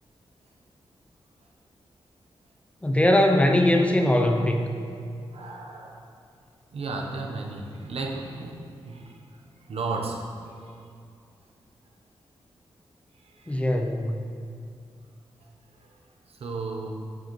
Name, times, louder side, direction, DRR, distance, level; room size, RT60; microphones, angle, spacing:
voice 1, 2.8-4.7 13.5-14.3, left 1 dB, 10° left, 3 dB, 0.6 m, -21 dB
voice 2, 5.3-6.1 6.7-8.6 8.8-9.1 9.7-10.2 13.2-13.6 15.8-15.9 16.3-16.9, right 3 dB, 75° right, 1 dB, 1.0 m, -34 dB
9.2 x 7.4 x 3.2 m, 2.4 s
wide cardioid pair, 105°, 10 cm